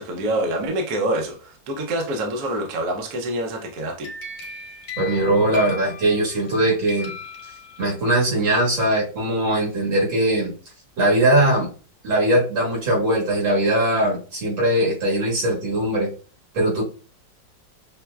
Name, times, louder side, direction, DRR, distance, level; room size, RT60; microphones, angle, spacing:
voice 1, 0.0-4.1, right 1 dB, 65° right, 1.1 m, -26 dB
sound 1, 3.8-6.6 6.9-8.2, left 3 dB, 70° left, 1.3 m, -37 dB
voice 2, 5.0-7.1 7.8-10.5 11.0-11.7 12.0-16.1 16.5-16.8, right 1 dB, 80° right, 2.3 m, -20 dB
5.6 x 2.0 x 2.3 m
omnidirectional pair, 2.0 m